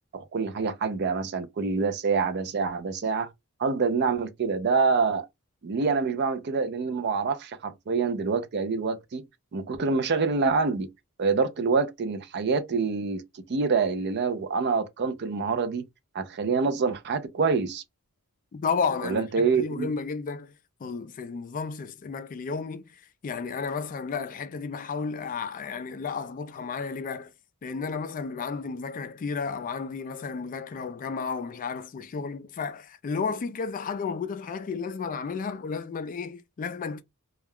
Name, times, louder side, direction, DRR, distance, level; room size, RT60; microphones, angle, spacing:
voice 1, 0.1-3.3 3.6-5.3 5.6-9.2 9.5-10.9 11.2-15.8 16.1-17.8 19.0-19.9, right 4 dB, 50° right, 0.4 m, -26 dB
voice 2, 18.5-20.5 20.8-27.3 27.6-37.0, left 5 dB, 40° left, 0.3 m, -32 dB
2.3 x 2.2 x 3.4 m
head